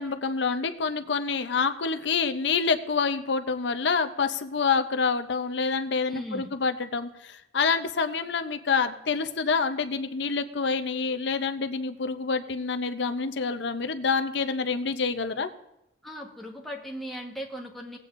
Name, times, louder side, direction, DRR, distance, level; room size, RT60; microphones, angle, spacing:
voice 1, 0.0-15.5, left 5 dB, 65° left, 8 dB, 0.6 m, -27 dB
voice 2, 6.1-6.5 16.0-18.0, equal, ahead, -2 dB, 1.2 m, -38 dB
18.0 x 8.3 x 2.5 m, 0.85 s
head